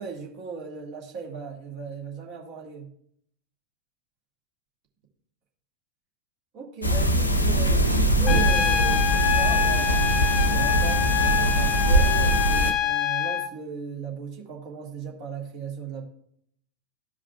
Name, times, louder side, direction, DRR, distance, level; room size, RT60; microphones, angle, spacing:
voice 1, 0.0-2.9 6.5-16.0, right 5 dB, 45° right, 0 dB, 1.8 m, -37 dB
sound 1, 6.8-12.7, right 1 dB, 80° left, 0.7 m, -22 dB
Trumpet, 8.3-13.5, left 9 dB, 30° left, 0.5 m, -25 dB
14.0 x 4.9 x 2.2 m, 0.67 s
figure-of-eight pair, 90°, 0 cm